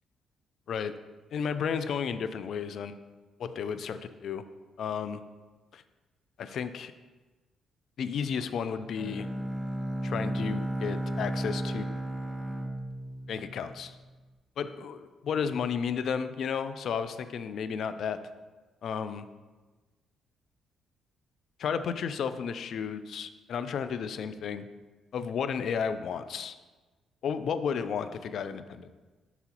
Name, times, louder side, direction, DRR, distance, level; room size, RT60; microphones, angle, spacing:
voice 1, 1.3-3.0 3.4-4.4 4.8-5.2 5.7-5.8 6.4-6.9 8.0-9.3 10.0-12.0 13.3-14.0 14.6-18.2 18.8-19.2 21.6-24.7 25.1-26.5 27.2-28.9, left 7 dB, 65° left, 11 dB, 0.4 m, -33 dB
Bowed string instrument, 9.0-14.0, right 1 dB, 5° left, 0.8 m, -34 dB
7.9 x 5.6 x 2.9 m, 1.3 s
cardioid pair, 90°, 0 cm